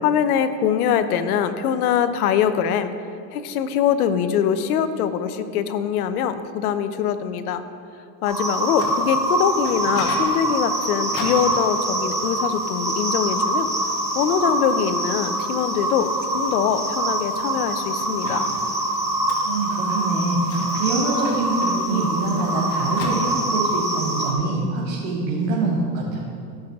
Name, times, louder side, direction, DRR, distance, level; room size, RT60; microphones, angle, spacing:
voice 1, 0.0-2.9 3.3-7.6 8.2-13.7 14.1-18.5, left 8 dB, 85° left, 11 dB, 0.9 m, -23 dB
sound 1, 8.2-24.3, right 1 dB, 5° right, 1.7 m, -24 dB
Microwave oven, 8.4-23.8, left 3 dB, 55° left, 2.0 m, -39 dB
voice 2, 19.4-26.2, right 3 dB, 65° right, -6 dB, 2.4 m, -24 dB
15.5 x 6.5 x 3.6 m, 2.5 s
supercardioid pair, 125°, 43 cm